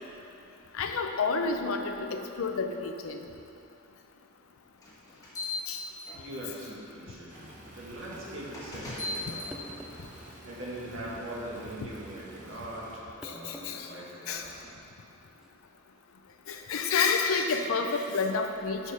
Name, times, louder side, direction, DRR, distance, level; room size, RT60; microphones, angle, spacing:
voice 1, 0.7-3.2 5.7-5.8 13.2-13.9 14.3-14.5 16.5-18.9, left 4 dB, 75° left, 5 dB, 0.5 m, -29 dB
sound 1, 4.8-6.6 7.3-7.5 8.5-9.5, left 2 dB, 15° left, 1.2 m, -37 dB
voice 2, 6.1-7.5 7.7-14.8, right 1 dB, 65° right, -5 dB, 1.6 m, -42 dB
sound 2, 7.3-13.0, right 1 dB, 40° right, 0.9 m, -50 dB
sound 3, 9.5-10.1 11.5-11.7 13.2-13.7 14.1-14.2 15.3-15.5, equal, ahead, 0.3 m, -47 dB
6.5 x 4.8 x 5.5 m, 2.8 s
head